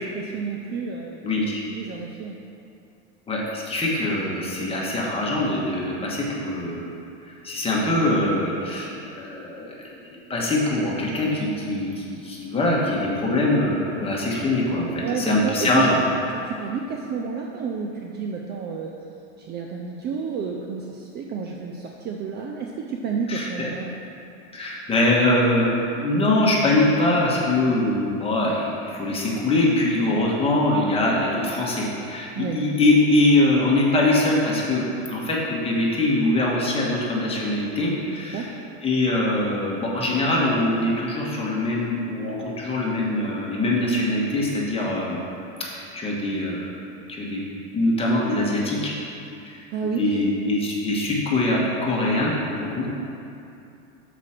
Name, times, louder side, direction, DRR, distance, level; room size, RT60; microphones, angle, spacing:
voice 1, 0.0-1.2 1.7-2.4 8.7-8.9 15.0-15.9 16.3-18.9 19.4-24.0 32.3-32.7 38.1-38.6 49.7-50.2, right 5 dB, 30° right, 0 dB, 0.4 m, -30 dB
voice 2, 1.2-1.6 3.3-6.9 7.3-15.9 23.3-23.7 24.5-38.4 38.8-45.2 45.7-46.7 47.1-47.4 47.7-48.9 49.4-49.6 50.0-52.9, left 1 dB, 15° left, -4 dB, 1.5 m, -23 dB
6.0 x 5.0 x 5.8 m, 2.7 s
supercardioid pair, 130°, 34 cm